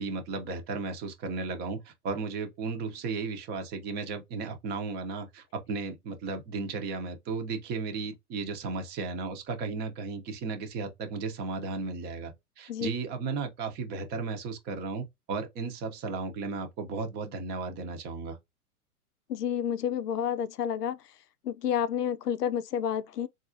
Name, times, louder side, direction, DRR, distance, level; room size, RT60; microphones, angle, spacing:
voice 1, 0.0-18.4, right 4 dB, 20° right, 0.7 m, -35 dB
voice 2, 19.3-21.0 21.4-23.3, left 9 dB, 90° left, 0.6 m, -30 dB
4.0 x 2.5 x 2.6 m
hypercardioid pair, 130°, 46 cm